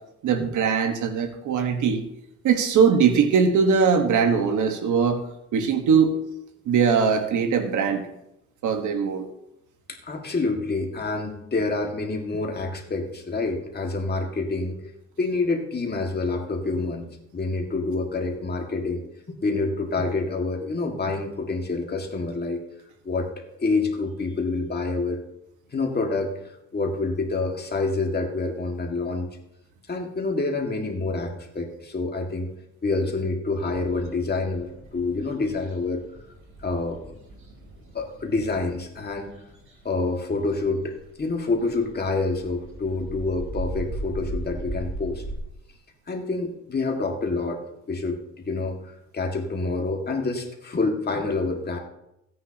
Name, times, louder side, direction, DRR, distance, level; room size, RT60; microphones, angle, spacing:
voice 1, 0.2-2.0 2.4-5.2 5.5-6.1 6.6-8.0 8.6-9.2, right 6 dB, 75° right, 6 dB, 1.5 m, -21 dB
voice 2, 9.9-14.8 15.2-17.1 17.3-19.0 19.4-22.6 23.0-23.3 23.6-25.2 25.7-26.3 26.7-29.3 29.9-32.5 32.8-36.0 36.6-37.2 37.9-39.3 39.8-45.2 46.1-47.6 47.9-48.2 48.5-48.8 49.1-51.8, left 3 dB, 35° left, 2 dB, 2.0 m, -27 dB
sound 1, 33.5-45.4, right 1 dB, 45° right, 3.5 m, -39 dB
16.5 x 9.4 x 2.9 m, 0.85 s
cardioid pair, 90°, 30 cm